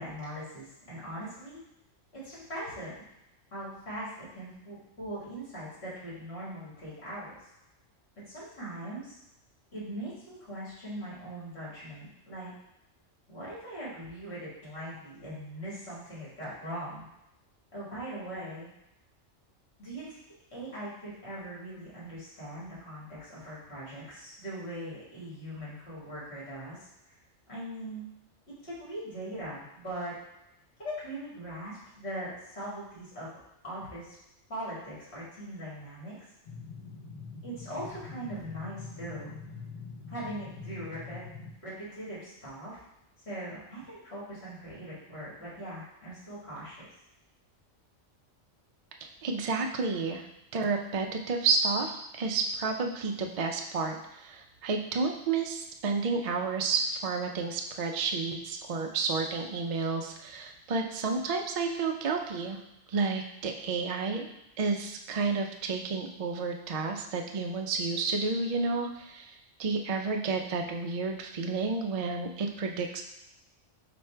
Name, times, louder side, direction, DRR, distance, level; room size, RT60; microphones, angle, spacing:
voice 1, 0.0-1.6 2.2-2.9 3.5-7.3 8.3-9.1 9.7-12.5 13.3-17.0 17.7-18.7 19.8-20.2 20.5-26.8 27.5-28.1 28.6-30.1 30.8-33.4 33.6-34.1 34.5-36.1 37.4-39.4 40.1-41.2 41.6-42.8 43.3-46.8, right 1 dB, 55° left, -7 dB, 2.1 m, -40 dB
sound 1, 36.5-41.5, left 4 dB, 40° left, 0.6 m, -44 dB
voice 2, 49.2-50.2 50.5-62.6 62.9-64.3 64.6-73.0, right 4 dB, 75° right, 2 dB, 0.3 m, -31 dB
4.6 x 2.5 x 4.3 m, 0.87 s
omnidirectional pair, 1.3 m